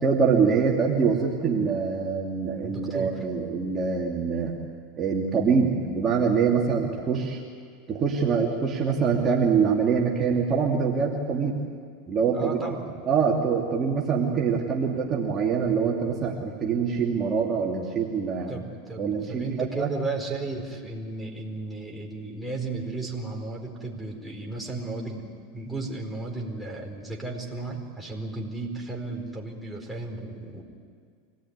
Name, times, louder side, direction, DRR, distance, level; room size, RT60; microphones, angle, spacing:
voice 1, 0.0-4.6 5.0-7.4 7.9-11.6 12.1-12.6 13.1-18.5 19.0-19.9, right 6 dB, 25° right, -2 dB, 2.8 m, -24 dB
voice 2, 2.6-3.2 12.1-12.9 18.5-30.6, right 3 dB, ahead, -2 dB, 4.5 m, -34 dB
25.5 x 18.5 x 9.7 m, 2.1 s
supercardioid pair, 120°, 0 cm